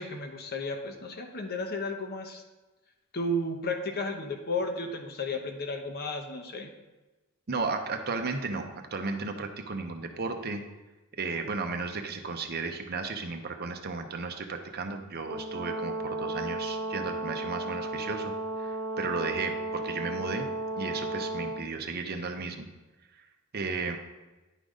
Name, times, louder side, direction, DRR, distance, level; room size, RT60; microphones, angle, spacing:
voice 1, 0.0-2.4 3.1-6.7, left 2 dB, 45° left, 4 dB, 0.9 m, -33 dB
voice 2, 7.5-10.6 11.1-20.5 20.8-22.7 23.5-24.0, right 4 dB, 45° right, 6 dB, 0.7 m, -34 dB
Brass instrument, 15.3-21.6, right 2 dB, 65° right, 1.0 m, -34 dB
10.0 x 3.9 x 4.9 m, 1.1 s
head